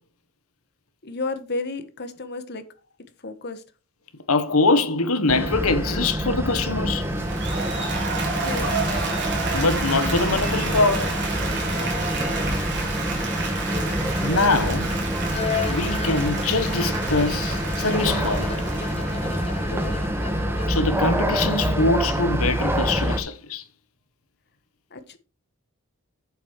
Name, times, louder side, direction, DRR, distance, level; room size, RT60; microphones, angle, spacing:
voice 1, 1.0-2.6 3.2-3.6 8.1-8.7 11.6-11.9 19.7-20.0 24.9-25.2, left 3 dB, 50° left, 1.4 m, -33 dB
voice 2, 4.3-7.1 9.5-11.2 14.2-14.9 15.7-18.5 20.7-23.6, left 3 dB, 70° left, 1.4 m, -23 dB
sound 1, 5.3-23.2, equal, 10° right, 1.5 m, -26 dB
Applause, 7.0-20.2, right 4 dB, 50° right, 3.8 m, -31 dB
Bowed string instrument, 15.3-21.0, left 6 dB, 30° left, 0.7 m, -34 dB
8.7 x 7.6 x 4.7 m
head